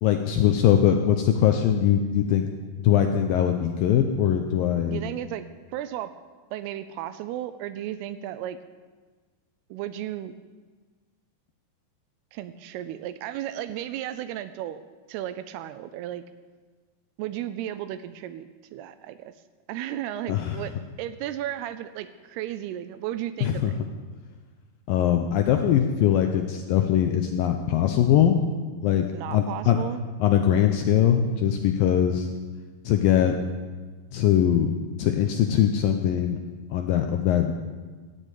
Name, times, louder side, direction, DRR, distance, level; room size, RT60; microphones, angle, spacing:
voice 1, 0.0-2.4 2.8-5.0 20.3-20.6 23.4-23.7 24.9-28.4 28.8-29.1 29.3-29.8 30.2-32.3 32.9-33.4 34.1-34.7 35.0-36.4 36.7-37.5, left 10 dB, 80° left, 5 dB, 2.1 m, -21 dB
voice 2, 4.9-6.1 6.5-8.6 9.7-10.4 12.3-14.8 15.1-16.2 17.2-19.3 19.7-20.7 21.0-23.8 29.1-30.0, right 12 dB, 80° right, 12 dB, 2.5 m, -34 dB
15.5 x 6.4 x 9.1 m, 1.4 s
omnidirectional pair, 4.8 m